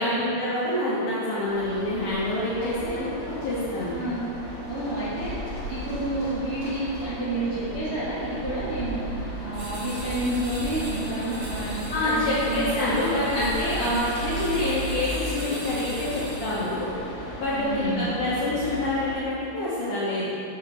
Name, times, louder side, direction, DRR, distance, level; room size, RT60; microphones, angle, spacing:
voice 1, 0.0-3.1 3.4-3.9 11.9-16.9 17.4-20.2, left 1 dB, 85° left, -9 dB, 1.8 m, -26 dB
sound 1, 1.4-19.1, equal, 50° left, 1.7 m, -35 dB
voice 2, 2.5-3.0 3.9-4.2 4.7-13.1 13.8-14.1 17.6-18.1, right 1 dB, 75° right, -11 dB, 1.2 m, -30 dB
sound 2, 9.5-16.8, right 1 dB, 40° right, 2.2 m, -41 dB
11.5 x 7.1 x 4.1 m, 2.8 s
omnidirectional pair, 5.7 m